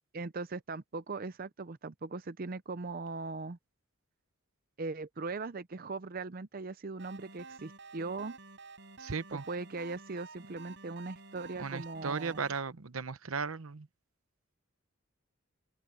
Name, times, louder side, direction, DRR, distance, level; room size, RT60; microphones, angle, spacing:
voice 1, 0.1-3.6 4.8-8.4 9.3-12.4, right 3 dB, 45° right, 0.6 m, -39 dB
sound 1, 7.0-12.6, right 3 dB, 60° right, 5.3 m, -51 dB
voice 2, 9.0-9.4 11.6-13.9, right 5 dB, 85° right, 0.9 m, -36 dB
open air
head